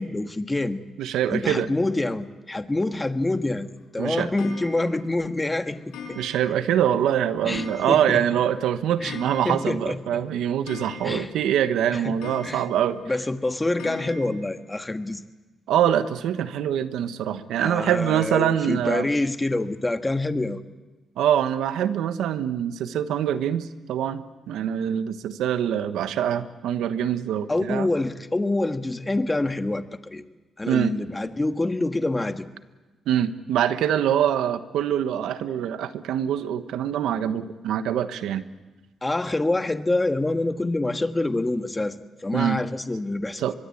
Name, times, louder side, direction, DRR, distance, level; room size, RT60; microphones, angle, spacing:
voice 1, 0.0-0.8 1.3-6.2 7.4-8.2 9.0-9.2 9.4-10.2 11.0-11.3 11.9-12.2 12.4-12.7 13.0-15.2 17.6-20.6 27.5-30.2 30.6-32.5 39.0-43.5, left 2 dB, 20° left, 8 dB, 1.5 m, -26 dB
voice 2, 1.0-1.7 4.0-4.3 6.2-13.0 15.7-19.1 21.2-27.9 30.7-30.9 33.1-38.4 42.3-42.6 43.4-43.5, right 10 dB, 90° right, 11 dB, 1.2 m, -24 dB
Clock, 4.4-5.1 5.9-6.7 7.0-7.1 7.5-8.3 8.6-8.7 8.9-9.9 10.2-10.3 10.7-11.5 12.2-12.9 13.8-14.3, left 5 dB, 90° left, 6.9 m, -40 dB
24.5 x 22.0 x 8.6 m, 1.2 s
cardioid pair, 80°, 0 cm